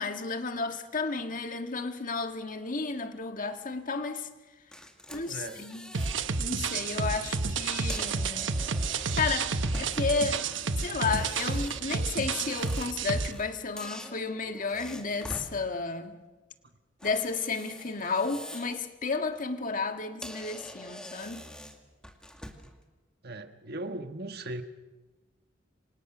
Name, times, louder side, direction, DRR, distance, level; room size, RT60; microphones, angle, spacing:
voice 1, 0.0-4.3 5.1-5.9 6.4-8.5 8.8-10.5 10.8-16.2 17.0-21.5, left 4 dB, 45° left, 1.8 m, -32 dB
sound 1, 4.7-6.3 6.7-6.9 7.7-10.2 10.9-13.5 13.8-15.5 17.0-18.8 19.2-19.4 19.9-20.0 20.2-22.8, equal, 5° left, 2.1 m, -45 dB
voice 2, 5.3-5.6 23.2-24.6, right 2 dB, 55° right, 1.5 m, -38 dB
sound 2, 5.9-13.3, right 4 dB, 80° right, 1.1 m, -30 dB
27.5 x 25.0 x 6.1 m
head